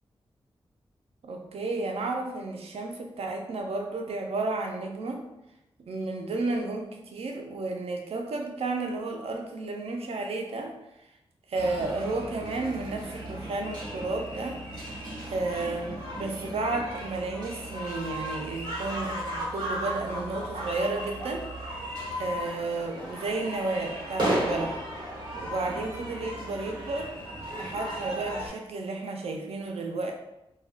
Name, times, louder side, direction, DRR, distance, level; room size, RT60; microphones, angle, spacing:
voice 1, 1.2-5.2 5.9-10.7 11.5-14.6 15.3-21.5 22.2-24.8 25.4-27.2 27.5-30.1, right 3 dB, 85° right, 2 dB, 0.5 m, -32 dB
sound 1, 11.5-28.5, right 1 dB, 45° right, 1.2 m, -35 dB
2.3 x 2.2 x 3.7 m, 0.90 s
wide cardioid pair, 115°, 10 cm